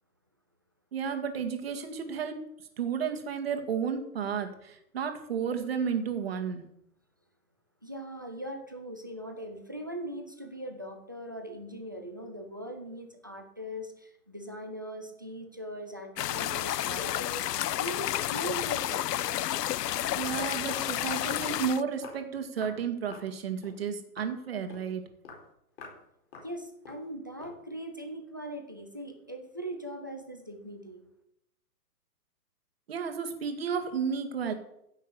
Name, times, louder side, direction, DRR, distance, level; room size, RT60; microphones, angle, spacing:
voice 1, 0.9-2.4 2.8-6.6 20.2-25.0 32.9-34.5, right 7 dB, 40° right, 6 dB, 2.1 m, -32 dB
voice 2, 7.8-19.3 26.4-31.1, right 1 dB, 15° right, 5 dB, 0.6 m, -40 dB
sound 1, 16.2-21.8, left 13 dB, 85° left, 0.6 m, -31 dB
Walk footsteps, 21.5-21.6 22.0-22.2 22.6-22.8 23.1-23.3 23.6-23.8 24.2-24.4 24.7-24.9 25.2-25.5 25.8-26.0 26.3-26.5 26.8-27.1 27.4-27.6, left 4 dB, 35° left, 4.5 m, -47 dB
15.5 x 6.4 x 8.3 m, 0.77 s
hypercardioid pair, 175°, 47 cm